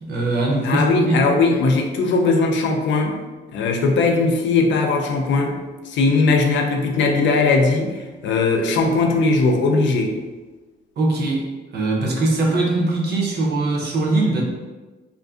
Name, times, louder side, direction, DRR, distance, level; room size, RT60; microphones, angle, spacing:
voice 1, 0.0-1.2 11.0-11.5 11.7-14.4, right 2 dB, 55° right, -2 dB, 0.7 m, -21 dB
voice 2, 0.6-3.2 3.5-5.6 5.8-10.1, left 3 dB, 70° left, 2 dB, 0.5 m, -19 dB
2.5 x 2.5 x 2.3 m, 1.2 s
cardioid pair, 90°, 20 cm